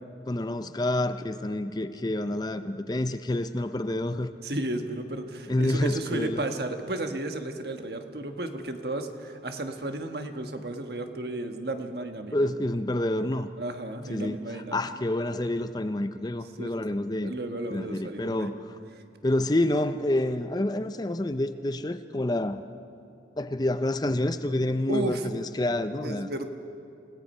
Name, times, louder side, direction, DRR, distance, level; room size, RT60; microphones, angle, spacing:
voice 1, 0.3-4.3 5.5-6.4 12.3-13.5 14.1-17.4 17.7-18.6 19.2-22.6 23.4-26.3, left 1 dB, 20° left, 10 dB, 0.5 m, -28 dB
voice 2, 4.4-12.5 13.6-14.9 16.6-16.7 17.2-18.5 24.9-25.3 26.0-26.5, right 1 dB, 60° right, 6 dB, 1.4 m, -33 dB
28.5 x 17.5 x 5.5 m, 2.6 s
head